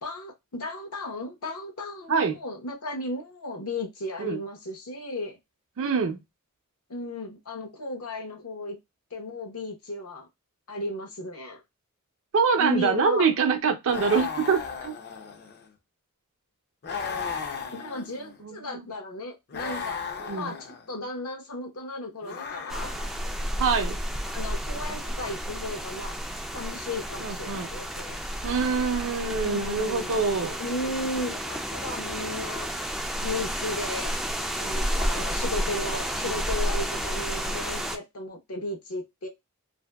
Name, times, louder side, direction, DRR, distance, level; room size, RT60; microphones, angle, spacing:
voice 1, 0.0-5.4 6.9-8.8 9.1-10.3 10.7-11.6 12.6-13.3 17.7-20.0 20.3-22.9 24.3-26.2 26.5-28.2 29.4-30.3 30.6-32.7 33.2-34.1 34.6-39.3, left 1 dB, 70° left, 0.9 m, -35 dB
voice 2, 5.8-6.2 12.3-14.9 18.4-18.8 20.2-20.5 23.6-24.0 27.2-27.7 28.4-30.5, right 5 dB, 60° right, 0.5 m, -25 dB
sound 1, 13.9-15.7 16.8-18.4 19.5-20.9 22.2-23.3, left 5 dB, 50° left, 0.5 m, -35 dB
sound 2, 22.7-38.0, equal, ahead, 0.3 m, -31 dB
2.6 x 2.5 x 2.2 m
head